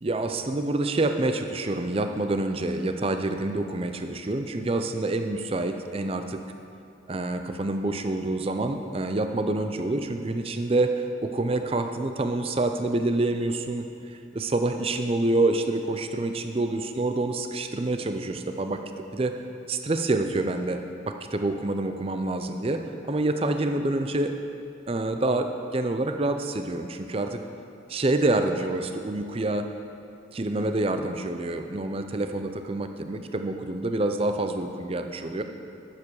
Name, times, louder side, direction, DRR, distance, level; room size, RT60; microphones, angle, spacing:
voice 1, 0.0-6.4 7.1-13.9 14.3-19.4 19.7-24.4 24.9-27.4 27.9-29.7 30.3-35.4, right 2 dB, 30° right, 7 dB, 0.5 m, -27 dB
11.5 x 7.5 x 4.8 m, 2.6 s
head